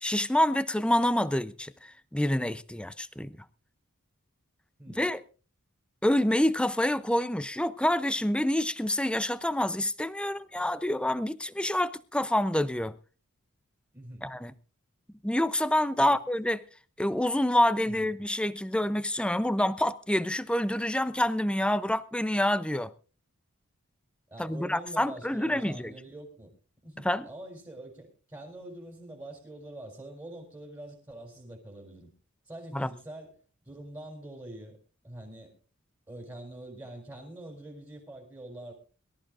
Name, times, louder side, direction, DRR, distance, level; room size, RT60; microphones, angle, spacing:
voice 1, 0.0-3.3 5.0-5.2 6.0-13.0 14.2-14.5 15.2-16.6 17.0-22.9 24.4-25.9 27.0-27.2 32.7-32.9, left 1 dB, 5° left, 0.5 m, -27 dB
voice 2, 13.9-14.3 16.0-16.2 17.8-18.1 24.3-26.5 26.8-32.1 32.5-33.3 33.6-34.8 35.0-35.5 36.1-38.7, right 1 dB, 15° right, 3.7 m, -45 dB
23.5 x 13.5 x 2.5 m
head